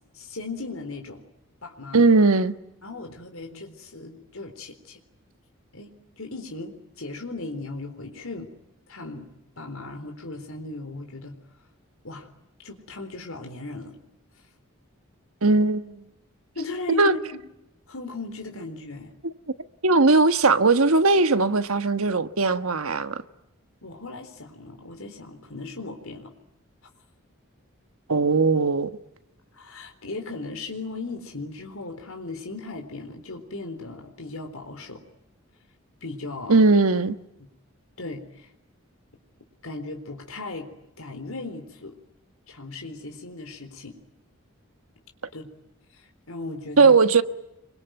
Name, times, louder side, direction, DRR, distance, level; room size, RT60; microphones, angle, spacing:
voice 1, 0.1-1.2 1.6-2.0 2.8-5.0 5.7-5.9 6.2-8.5 8.9-9.3 9.6-11.4 12.0-12.3 12.6-13.9 16.5-17.4 17.9-19.1 23.8-26.3 29.5-35.0 36.0-36.6 38.0-38.5 39.6-40.7 41.0-41.9 42.5-44.0 45.3-45.5 45.9-47.0, left 3 dB, 80° left, 4.0 m, -37 dB
voice 2, 1.9-2.5 15.4-16.0 17.0-17.1 19.8-23.2 28.1-28.9 36.5-37.2 46.8-47.2, right 3 dB, 90° right, 1.4 m, -19 dB
27.0 x 24.0 x 9.3 m
head